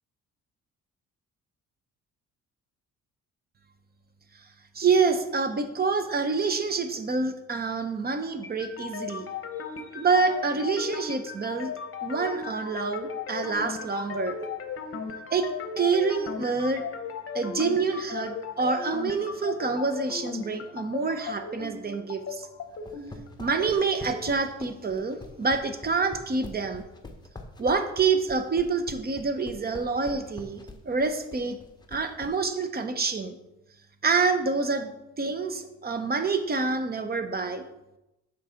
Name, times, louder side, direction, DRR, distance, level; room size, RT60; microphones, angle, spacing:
voice 1, 4.7-9.3 9.9-11.7 12.0-14.4 15.3-15.5 15.8-16.9 17.3-22.5 23.4-26.8 27.6-31.6 31.9-33.3 34.0-37.6, right 4 dB, 30° right, 8 dB, 0.8 m, -27 dB
sound 1, 8.4-24.4, left 6 dB, 45° left, 0.8 m, -37 dB
sound 2, 22.7-32.3, left 3 dB, 15° left, 0.9 m, -44 dB
6.1 x 4.0 x 5.7 m, 0.93 s
cardioid pair, 90°, 30 cm